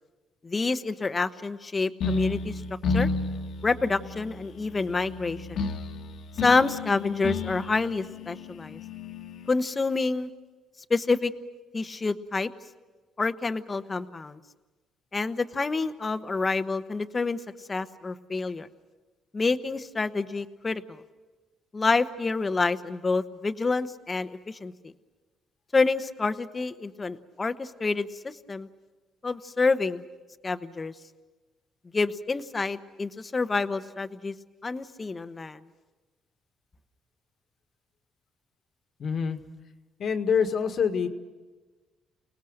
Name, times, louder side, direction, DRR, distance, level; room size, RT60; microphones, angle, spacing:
voice 1, 0.4-2.6 2.9-3.1 3.6-5.6 6.4-8.8 9.5-10.3 10.9-11.3 11.7-12.5 13.2-14.4 15.1-17.4 17.7-18.7 19.3-21.0 21.7-24.9 25.7-28.7 29.2-30.0 30.4-30.9 31.9-34.3 34.6-35.6, left 3 dB, 30° left, 11 dB, 1.1 m, -28 dB
sound 1, 2.0-9.5, left 4 dB, 75° left, 1.8 m, -32 dB
voice 2, 39.0-39.4 40.0-41.1, left 6 dB, 60° left, 7 dB, 1.8 m, -25 dB
30.0 x 19.0 x 6.6 m, 1.3 s
cardioid pair, 90°, 0 cm